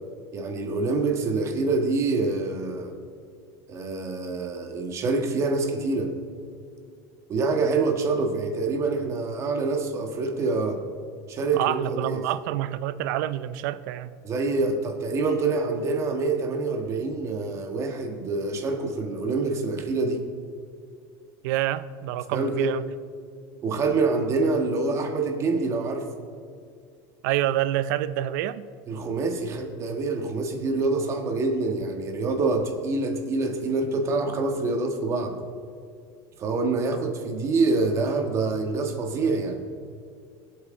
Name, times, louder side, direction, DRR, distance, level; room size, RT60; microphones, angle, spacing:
voice 1, 0.3-2.9 3.7-6.1 7.3-10.8 11.3-12.2 14.2-20.3 22.3-22.7 23.6-26.1 28.9-35.4 36.4-39.6, right 3 dB, 30° right, 1.5 m, -26 dB
voice 2, 11.5-14.2 21.4-22.8 27.2-28.7, right 13 dB, 75° right, 0.5 m, -27 dB
22.5 x 8.1 x 3.8 m
cardioid pair, 160°, 10 cm